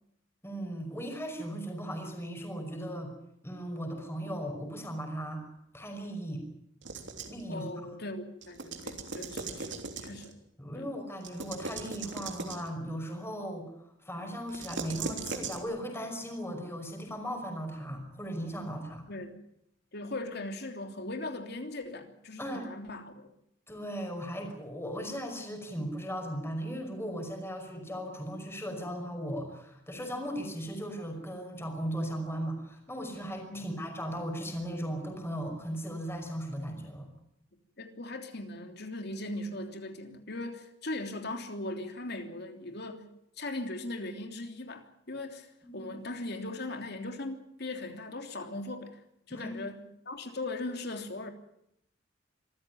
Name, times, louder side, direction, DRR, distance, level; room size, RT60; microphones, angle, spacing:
voice 1, 0.4-3.1 3.4-5.5 5.7-6.4 7.3-7.7 10.6-13.7 14.0-19.0 22.4-22.6 23.7-37.1 45.6-45.9 49.3-49.5, equal, 15° left, 3 dB, 5.6 m, -37 dB
sound 1, 6.8-7.4 8.4-10.3 11.2-12.7 14.5-15.6, right 4 dB, 70° right, 3.2 m, -39 dB
voice 2, 7.5-10.4 10.7-10.8 19.1-19.3 19.9-23.3 33.5-33.7 37.8-43.1 43.4-49.0 49.3-49.8 50.0-51.3, left 2 dB, 60° left, 6 dB, 3.2 m, -39 dB
26.0 x 15.0 x 9.3 m, 0.77 s
head